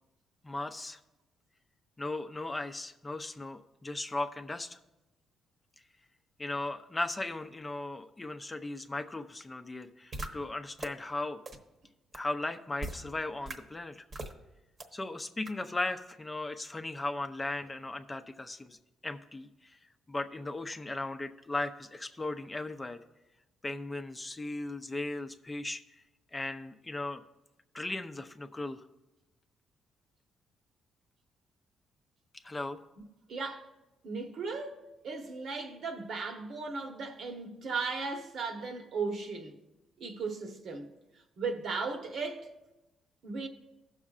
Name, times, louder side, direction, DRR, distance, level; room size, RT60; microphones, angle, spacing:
voice 1, 0.4-1.0 2.0-4.8 6.4-11.4 12.1-14.0 14.9-18.8 19.0-19.8 20.1-23.0 23.6-25.8 26.3-27.2 27.7-28.8 32.4-32.8, left 2 dB, 20° left, 0.6 m, -37 dB
sound 1, 10.1-10.3 10.8-10.9 11.5-11.6 12.1-12.2 12.8-13.0 13.5-13.6 14.1-14.3 14.8-14.9 15.5-15.6, right 2 dB, 40° right, 1.1 m, -38 dB
voice 2, 33.3-33.6 34.0-34.8 35.0-39.5 40.0-40.9 41.4-42.5 43.2-43.5, right 4 dB, 65° right, 1.2 m, -36 dB
16.5 x 6.3 x 2.5 m
cardioid pair, 90°, 0 cm